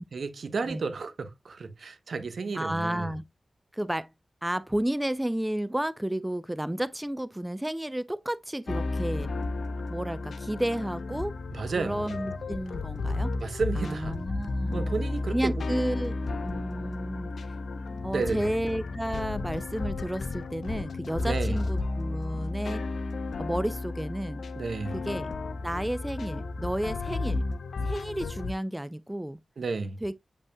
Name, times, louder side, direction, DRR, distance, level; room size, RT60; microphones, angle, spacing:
voice 1, 0.1-3.1 11.5-12.3 13.4-14.2 14.7-15.6 18.1-18.5 21.2-21.6 24.5-25.0 29.6-30.0, right 4 dB, 80° right, 0.9 m, -32 dB
voice 2, 2.5-3.2 3.7-4.1 4.4-9.3 9.9-11.3 11.8-13.3 13.8-14.9 15.3-16.2 16.4-17.3 18.0-22.8 23.4-24.4 24.9-25.3 25.6-27.4 27.8-29.4 30.0-30.1, right 1 dB, 10° right, 0.5 m, -32 dB
sound 1, 8.7-28.5, left 3 dB, 85° left, 0.6 m, -33 dB
8.4 x 5.4 x 2.3 m
cardioid pair, 50°, 0 cm